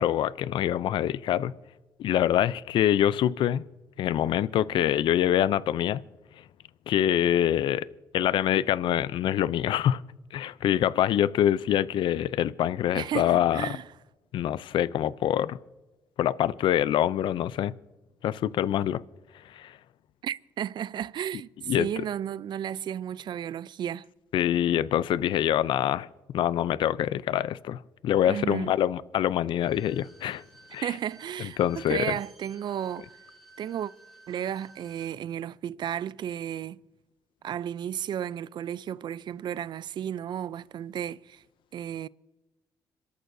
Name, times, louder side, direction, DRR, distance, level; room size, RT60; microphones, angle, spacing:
voice 1, 0.0-1.5 2.0-3.6 4.0-6.0 6.9-7.9 8.1-10.0 10.3-13.6 14.3-15.6 16.2-17.7 18.2-19.0 19.5-19.7 21.7-21.9 24.3-26.1 26.3-30.4 30.7-30.8 31.6-32.1, left 11 dB, 75° left, 0.4 m, -25 dB
voice 2, 12.9-13.9 20.2-24.1 28.3-28.7 30.8-33.1 33.6-33.9 34.3-36.8 37.4-41.4 41.7-42.1, right 10 dB, 65° right, 0.4 m, -33 dB
Bowed string instrument, 29.5-35.1 35.5-35.6, right 2 dB, 5° left, 5.2 m, -55 dB
27.0 x 13.5 x 2.7 m
cardioid pair, 80°, 8 cm